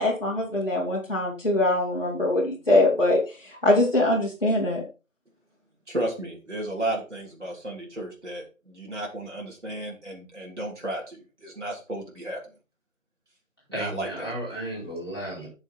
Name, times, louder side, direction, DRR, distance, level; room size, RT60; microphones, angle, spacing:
voice 1, 0.0-4.8, left 1 dB, 40° left, -6 dB, 2.6 m, -23 dB
voice 2, 5.9-12.4 13.7-14.3, right 1 dB, 55° right, -2 dB, 3.1 m, -33 dB
voice 3, 13.7-15.5, right 1 dB, 20° left, -9 dB, 4.5 m, -34 dB
8.7 x 6.5 x 4.2 m, 0.31 s
figure-of-eight pair, 180°, 41 cm